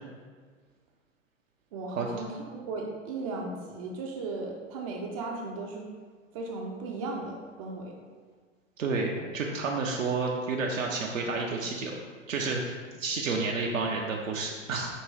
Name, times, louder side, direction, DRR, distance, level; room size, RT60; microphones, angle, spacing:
voice 1, 1.7-5.8 6.3-7.9, right 3 dB, 30° right, 0 dB, 0.4 m, -36 dB
voice 2, 8.8-12.0 12.3-14.9, right 3 dB, 75° right, -1 dB, 0.6 m, -30 dB
5.3 x 2.9 x 3.0 m, 1.5 s
figure-of-eight pair, 95°, 39 cm